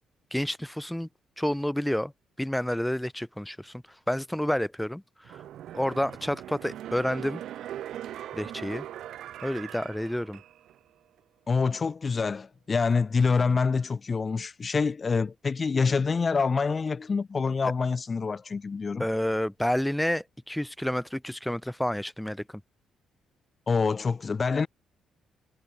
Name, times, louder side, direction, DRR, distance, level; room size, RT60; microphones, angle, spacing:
voice 1, 0.3-1.1 1.4-2.1 2.4-5.4 5.7-7.4 8.3-8.9 9.4-10.4 19.0-22.4, equal, 5° left, 0.9 m, -29 dB
sound 1, 5.2-10.8 11.2-11.3, right 11 dB, 75° right, 0.7 m, -40 dB
voice 2, 11.5-19.1 23.7-24.7, left 5 dB, 35° left, 0.6 m, -26 dB
cardioid pair, 90°, 0 cm